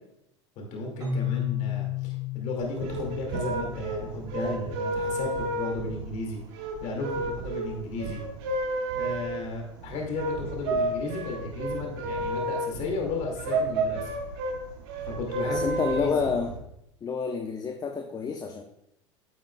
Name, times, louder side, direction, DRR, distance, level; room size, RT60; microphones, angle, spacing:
voice 1, 0.6-6.4 6.8-8.2 9.0-14.1 15.0-16.3, left 2 dB, 50° left, 0 dB, 2.1 m, -34 dB
Keyboard (musical), 1.0-4.7, left 9 dB, 25° right, 2.2 m, -33 dB
sound 1, 2.6-16.6, right 2 dB, 60° right, 1.5 m, -31 dB
voice 2, 15.4-16.5 17.0-18.6, left 5 dB, 25° left, 4 dB, 0.7 m, -29 dB
9.5 x 7.4 x 2.2 m, 0.79 s
hypercardioid pair, 90°, 15 cm